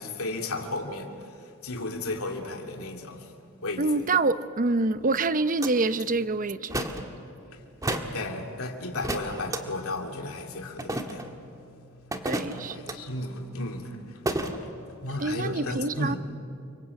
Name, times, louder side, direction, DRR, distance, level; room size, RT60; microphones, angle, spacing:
voice 1, 0.0-3.3 3.6-4.2 7.5-14.2 14.8-16.2, left 2 dB, 75° left, 2.7 m, -35 dB
voice 2, 3.8-6.8 12.2-12.8 15.2-16.2, right 3 dB, 40° right, 0.8 m, -26 dB
sound 1, 5.6-5.7 6.7-7.1 7.8-8.2 9.0-9.6 10.8-11.3 12.1-13.0 14.3-14.6, right 1 dB, 15° right, 1.7 m, -31 dB
29.0 x 24.5 x 8.3 m
head